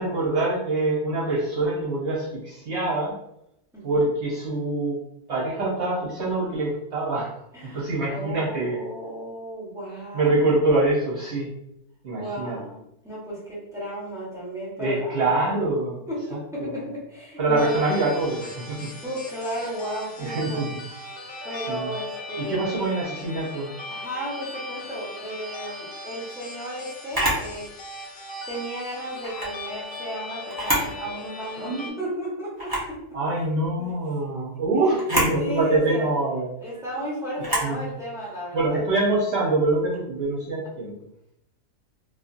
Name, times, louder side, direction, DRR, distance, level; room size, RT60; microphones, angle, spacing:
voice 1, 0.0-3.2 3.8-5.0 5.3-7.4 7.7-8.8 10.1-11.5 12.0-12.6 14.8-16.0 16.3-16.8 17.4-18.9 20.2-20.7 21.5-21.9 22.4-23.7 31.6-32.0 33.1-36.5 37.4-37.9 38.5-40.9, right 2 dB, 50° right, -6 dB, 1.0 m, -25 dB
voice 2, 3.7-4.1 7.5-10.7 12.1-15.3 16.1-17.9 19.0-20.7 21.4-22.8 23.9-27.7 28.5-33.0 33.8-33.9 35.3-36.1 36.6-38.8, equal, 5° right, -8 dB, 0.7 m, -34 dB
sound 1, 17.6-31.9, left 2 dB, 80° left, 1.2 m, -38 dB
Camera, 27.1-27.5 29.2-29.5 30.5-30.9 31.4-31.5 32.6-32.9 35.0-35.4 37.4-37.7, right 1 dB, 30° right, 0.4 m, -25 dB
2.7 x 2.5 x 2.5 m, 0.81 s
omnidirectional pair, 1.7 m